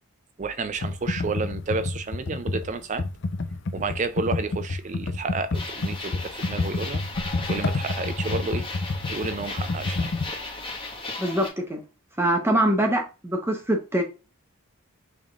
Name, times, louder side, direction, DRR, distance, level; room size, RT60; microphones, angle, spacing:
voice 1, 0.4-3.1 3.7-7.0 7.5-8.7 9.1-10.1, right 3 dB, 35° right, 0.4 m, -31 dB
Computer keyboard, 0.8-10.3, left 3 dB, 55° left, 0.5 m, -29 dB
sound 1, 5.5-11.5, left 2 dB, 25° left, 1.3 m, -36 dB
voice 2, 11.2-11.8 12.2-14.0, right 1 dB, 10° right, 0.8 m, -23 dB
6.2 x 3.5 x 2.4 m
head